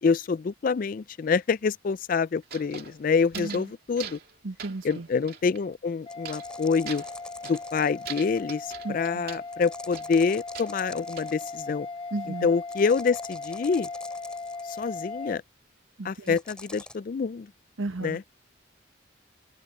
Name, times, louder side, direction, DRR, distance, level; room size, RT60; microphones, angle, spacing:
voice 1, 0.0-4.2 4.8-7.0 7.4-11.9 12.4-13.9 14.7-15.4 16.0-17.5 18.0-18.2, left 5 dB, 45° left, 0.3 m, -26 dB
sound 1, 2.4-3.7 4.0-4.3 4.6-5.6 6.3-6.6 6.9-7.7 8.1-9.5 9.9-11.3, right 8 dB, 50° right, 2.8 m, -42 dB
voice 2, 3.3-3.7 4.4-5.1 8.8-9.2 12.1-12.5 16.0-16.4 17.8-18.2, right 2 dB, 80° right, 1.3 m, -34 dB
sound 2, 6.1-15.4, left 3 dB, 25° left, 1.0 m, -38 dB
sound 3, 6.1-8.3 9.5-11.7 12.7-14.9 16.3-17.0, left 1 dB, 5° left, 3.8 m, -47 dB
open air
head